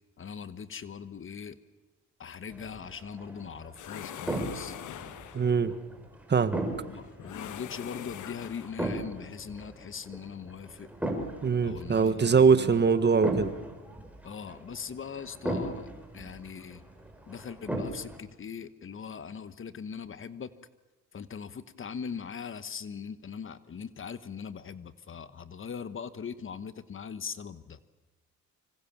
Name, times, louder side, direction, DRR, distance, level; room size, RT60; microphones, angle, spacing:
voice 1, 0.2-1.6 2.2-4.8 6.8-10.9 11.6-12.8 14.2-16.8 17.3-20.5 21.1-27.8, left 6 dB, 40° left, 14 dB, 1.3 m, -40 dB
sound 1, 2.5-18.2, right 1 dB, 5° right, 5.0 m, -38 dB
sound 2, 3.8-5.6 7.2-9.0, left 11 dB, 80° left, 1.4 m, -43 dB
voice 2, 5.3-5.7 6.3-6.6 11.4-13.5, right 5 dB, 35° right, 12 dB, 1.6 m, -22 dB
25.5 x 25.0 x 7.4 m, 1.1 s
cardioid pair, 90°, 30 cm